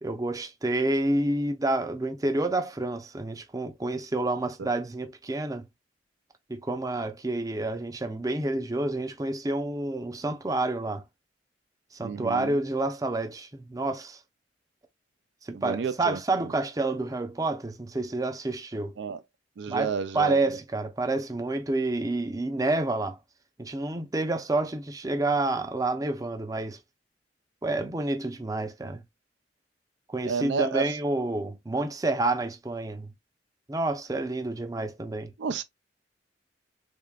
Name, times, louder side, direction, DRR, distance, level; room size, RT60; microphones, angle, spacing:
voice 1, 0.0-5.6 6.5-11.0 11.9-14.2 15.4-19.0 19.7-23.2 23.6-26.8 27.6-29.0 30.1-33.1 33.7-35.3, right 2 dB, 20° right, 0.6 m, -29 dB
voice 2, 12.0-12.6 15.5-16.2 19.0-19.2 19.6-20.4 30.2-30.9 35.4-35.6, right 5 dB, 80° right, 0.4 m, -31 dB
3.6 x 3.5 x 2.3 m
head